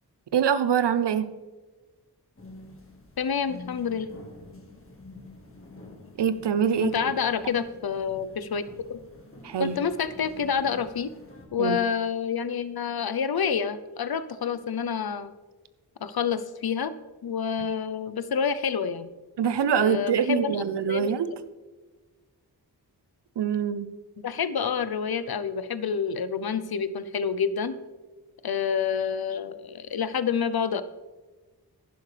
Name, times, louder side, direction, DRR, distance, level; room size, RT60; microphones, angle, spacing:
voice 1, 0.3-1.3 6.2-7.1 9.4-9.8 11.6-11.8 19.4-21.3 23.4-23.9, right 8 dB, 85° right, 13 dB, 0.6 m, -24 dB
sound 1, 2.4-11.5, left 2 dB, 30° left, 1.8 m, -48 dB
voice 2, 3.2-4.1 6.8-8.6 8.9-9.0 9.6-11.1 11.5-15.3 16.0-17.0 17.2-19.1 19.8-20.6 20.9-21.1 24.2-27.8 28.4-30.8, left 7 dB, 65° left, 13 dB, 0.7 m, -28 dB
11.5 x 10.5 x 3.3 m, 1.3 s
cardioid pair, 50°, 40 cm